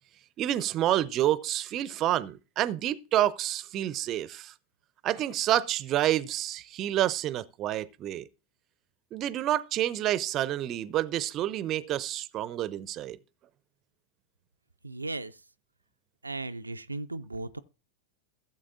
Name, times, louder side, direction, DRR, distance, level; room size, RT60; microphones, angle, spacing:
voice 1, 0.4-4.5 5.0-8.3 9.1-13.2, right 13 dB, 35° right, 0.6 m, -28 dB
voice 2, 14.8-15.4 16.2-17.6, right 2 dB, 80° right, 0.4 m, -36 dB
16.0 x 7.5 x 2.5 m
figure-of-eight pair, 90°, 0 cm